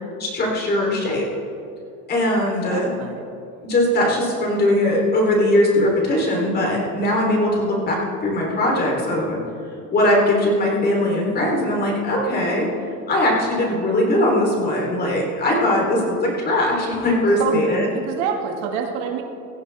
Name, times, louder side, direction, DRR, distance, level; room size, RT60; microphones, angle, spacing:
voice 1, 0.2-1.3 2.1-2.9 3.6-9.4 9.9-12.7 13.1-17.9, left 1 dB, 25° left, -1 dB, 3.5 m, -20 dB
voice 2, 2.6-3.2 17.4-17.6 17.9-19.2, right 7 dB, 70° right, 3 dB, 2.0 m, -27 dB
17.0 x 14.5 x 3.5 m, 2.5 s
cardioid pair, 155°, 37 cm